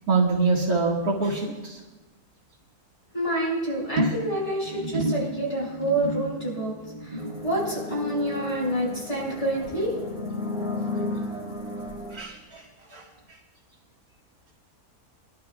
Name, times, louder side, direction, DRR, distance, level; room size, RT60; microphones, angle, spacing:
voice 1, 0.1-1.8 12.1-12.6 12.9-13.0, right 3 dB, 70° right, -6 dB, 2.2 m, -24 dB
voice 2, 3.1-6.7 7.0-9.9, right 1 dB, 20° left, -5 dB, 5.3 m, -28 dB
sound 1, 4.0-10.5 10.8-11.2 11.6-11.7, right 1 dB, 35° right, 0.8 m, -33 dB
sound 2, 7.2-12.2, left 2 dB, 5° right, 2.9 m, -34 dB
22.5 x 12.0 x 2.3 m, 1.1 s
omnidirectional pair, 1.6 m